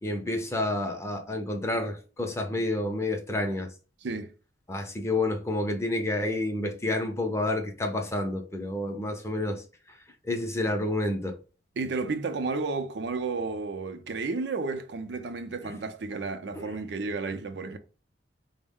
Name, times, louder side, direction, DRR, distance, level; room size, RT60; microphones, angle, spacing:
voice 1, 0.0-3.7 4.7-9.6 10.3-11.4 16.5-16.6, left 2 dB, 15° left, 0.5 m, -29 dB
voice 2, 4.0-4.3 11.8-17.8, right 3 dB, 70° right, 0.5 m, -32 dB
4.2 x 2.1 x 3.5 m
head